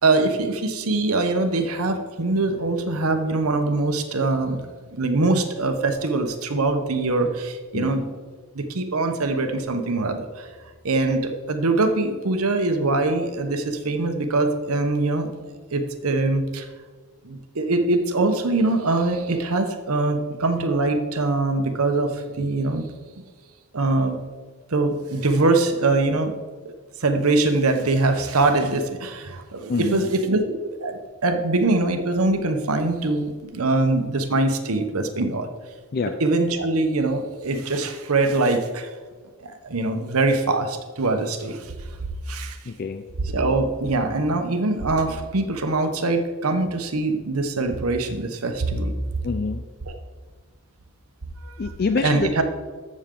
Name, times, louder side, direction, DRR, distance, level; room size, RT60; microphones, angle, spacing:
voice 1, 0.0-4.6 5.0-8.1 8.5-10.5 10.8-15.3 15.7-16.7 17.2-22.9 23.7-24.2 24.7-26.3 26.6-26.7 27.0-35.5 36.2-38.9 39.4-41.7 42.3-42.6 43.2-49.1 49.8-50.0 51.4-51.6 52.0-52.4, right 2 dB, 90° right, 7 dB, 1.0 m, -23 dB
voice 2, 29.7-30.1 35.9-36.1 42.6-43.0 49.2-49.6 51.6-52.3, left 4 dB, 45° left, 8 dB, 0.4 m, -26 dB
14.0 x 6.4 x 3.8 m, 1.5 s
head